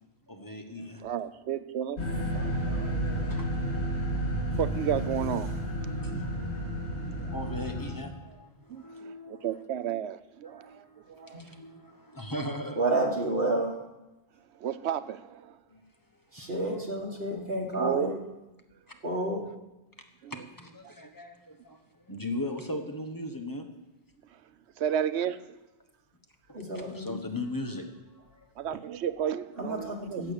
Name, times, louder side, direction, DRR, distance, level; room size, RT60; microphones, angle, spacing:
voice 1, 0.3-1.0 3.2-4.4 5.8-9.6 10.4-12.8 15.7-15.8 16.4-16.6 20.3-23.7 26.7-28.5 29.5-29.7 30.0-30.1, left 1 dB, 20° left, 5 dB, 1.2 m, -39 dB
voice 2, 1.0-2.2 2.8-2.9 4.6-5.5 7.0-7.3 8.7-11.4 14.6-15.6 17.8-18.1 20.2-20.4 20.8-20.9 24.8-25.6 27.1-27.2 28.6-30.2, right 9 dB, 80° right, 13 dB, 0.9 m, -32 dB
sound 1, 2.0-7.9, equal, 85° left, 3.1 m, -31 dB
voice 3, 2.3-3.3 11.3-11.4 12.7-13.7 16.3-18.2 19.0-19.4 26.5-27.2 29.6-30.3, right 2 dB, 60° right, -3 dB, 1.8 m, -31 dB
14.5 x 8.5 x 6.7 m, 1.0 s
omnidirectional pair, 1.1 m